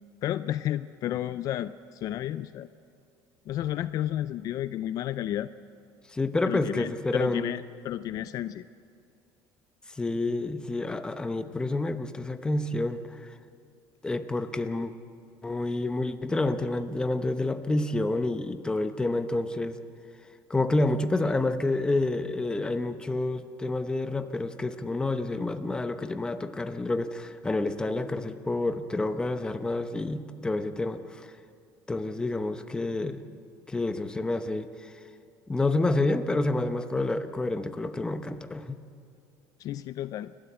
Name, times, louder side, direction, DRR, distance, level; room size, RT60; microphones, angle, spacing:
voice 1, 0.2-2.7 3.5-5.5 6.5-8.6 39.6-40.3, left 12 dB, 50° left, 14 dB, 0.4 m, -32 dB
voice 2, 6.1-7.5 10.0-13.3 14.0-14.9 15.4-19.8 20.5-31.3 31.9-33.2 33.7-34.9 35.5-38.8, left 2 dB, 10° left, 9 dB, 0.9 m, -29 dB
29.5 x 12.5 x 8.1 m, 2.5 s
cardioid pair, 140°, 8 cm